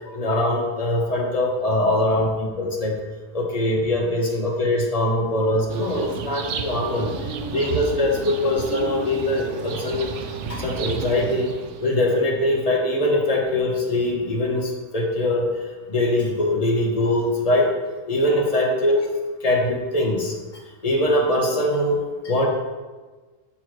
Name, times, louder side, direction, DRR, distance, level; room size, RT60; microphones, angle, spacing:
voice 1, 0.1-2.3 2.6-3.0 3.3-7.1 7.5-10.1 10.5-11.5 11.8-15.5 15.9-17.7 18.1-19.0 19.4-20.3 20.8-22.5, left 1 dB, 30° left, -1 dB, 1.0 m, -22 dB
sound 1, 5.7-12.0, right 5 dB, 65° right, 0.8 m, -32 dB
6.4 x 4.2 x 4.5 m, 1.3 s
omnidirectional pair, 1.4 m